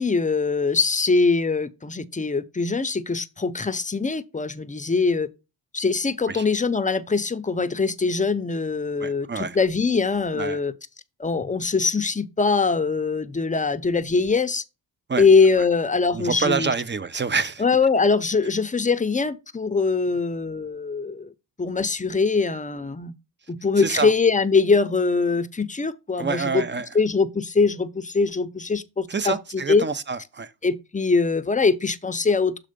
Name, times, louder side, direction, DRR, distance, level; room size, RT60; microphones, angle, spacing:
voice 1, 0.0-5.3 5.7-10.7 11.2-14.6 15.2-16.7 17.6-21.3 21.6-23.1 23.5-26.6 26.9-29.3 29.7-29.8 30.6-32.7, left 4 dB, 20° left, 0.7 m, -22 dB
voice 2, 9.0-9.6 10.3-10.6 15.1-15.2 16.1-17.6 23.8-24.1 26.2-26.9 29.1-30.5, right 4 dB, 25° right, 0.7 m, -27 dB
6.6 x 3.7 x 5.1 m
cardioid pair, 85°, 43 cm